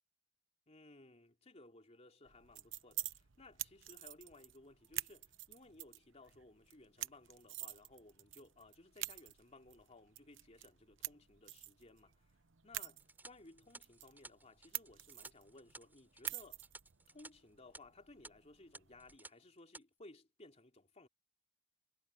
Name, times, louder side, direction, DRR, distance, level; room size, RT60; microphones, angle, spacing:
voice 1, 0.7-12.2 12.6-16.6 17.1-21.1, left 2 dB, 35° left, 3.2 m, -60 dB
sound 1, 2.3-19.2, right 15 dB, 75° right, 1.0 m, -49 dB
sound 2, 13.0-17.3 17.6-17.8 18.2-18.3 18.7-19.3 19.6-19.8, right 2 dB, 10° right, 3.6 m, -55 dB
head